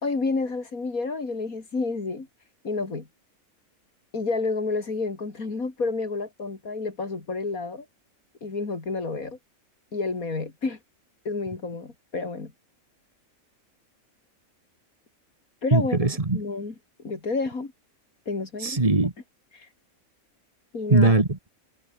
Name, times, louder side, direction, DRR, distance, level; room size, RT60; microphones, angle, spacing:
voice 1, 0.0-2.3 2.6-3.1 4.1-7.9 8.4-9.4 9.9-10.8 11.3-12.5 15.6-16.0 16.3-16.7 17.0-17.7 18.3-18.8 19.6-19.7 20.7-21.1, left 3 dB, 90° left, 3.8 m, -29 dB
voice 2, 15.7-16.4 18.6-19.1 20.9-21.5, right 2 dB, 25° right, 1.9 m, -20 dB
omnidirectional pair, 1.4 m